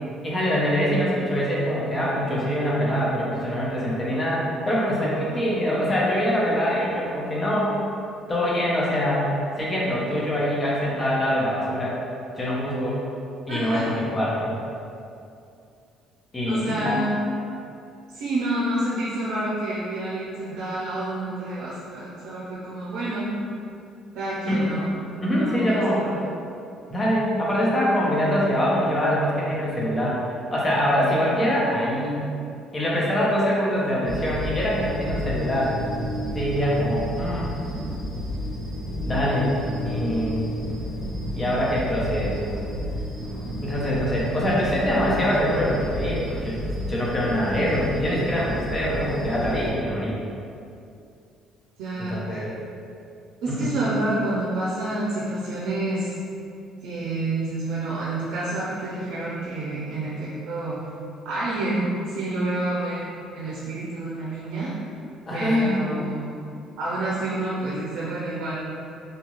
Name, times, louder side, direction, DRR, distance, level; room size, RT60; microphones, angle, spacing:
voice 1, 0.2-7.8 8.3-9.3 9.6-12.0 12.3-13.0 13.5-14.5 16.3-17.1 24.5-24.7 25.2-26.1 26.9-30.2 30.5-32.3 32.7-35.8 36.3-37.5 39.0-39.5 39.8-40.4 41.3-42.4 43.6-50.2 52.1-52.5 53.5-53.8 65.3-66.0, equal, 20° left, -5 dB, 0.6 m, -24 dB
voice 2, 13.5-13.9 16.4-17.1 18.1-23.3 24.1-24.9 25.4-26.2 51.8-52.4 53.4-56.1 56.8-60.9 61.2-64.7 65.3-66.2 66.8-68.6, right 2 dB, 80° right, -7 dB, 0.5 m, -28 dB
sound 1, 34.1-49.7, equal, 20° right, 0.7 m, -31 dB
2.7 x 2.4 x 3.0 m, 2.5 s
cardioid pair, 135°, 0 cm